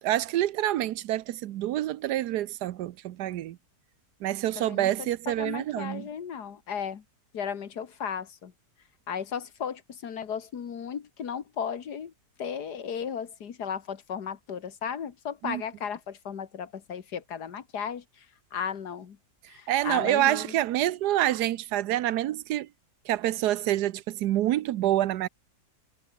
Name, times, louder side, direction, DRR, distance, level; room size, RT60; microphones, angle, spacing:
voice 1, 0.0-3.6 4.2-6.1 15.4-15.6 19.7-22.7 23.1-25.3, right 13 dB, 75° right, 1.2 m, -27 dB
voice 2, 4.6-7.0 7.3-8.5 9.1-12.1 12.4-18.0 18.5-19.2 19.5-20.5, left 7 dB, 70° left, 2.1 m, -35 dB
omnidirectional pair, 1.8 m